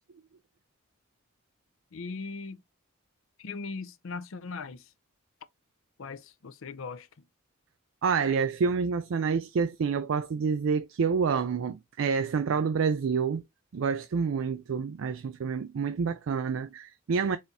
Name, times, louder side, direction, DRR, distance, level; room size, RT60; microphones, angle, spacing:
voice 1, 1.9-2.6 3.4-4.9 6.0-7.3, left 4 dB, 70° left, 0.5 m, -39 dB
voice 2, 8.0-13.4 13.7-17.4, right 5 dB, 65° right, 0.4 m, -28 dB
4.2 x 2.6 x 3.5 m
head